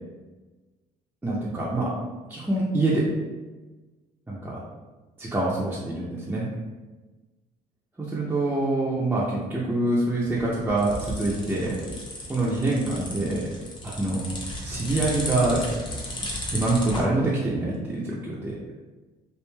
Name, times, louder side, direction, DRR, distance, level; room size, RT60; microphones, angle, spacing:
voice 1, 1.2-1.9 2.3-3.0 4.3-4.6 5.2-6.5 8.0-11.7 12.3-13.4 13.8-14.3 14.6-15.6 16.5-18.6, right 2 dB, 10° right, -7 dB, 0.4 m, -25 dB
sound 1, 10.2-17.0, left 1 dB, 30° left, 0.7 m, -34 dB
3.0 x 2.5 x 2.2 m, 1.2 s
cardioid pair, 110°, 17 cm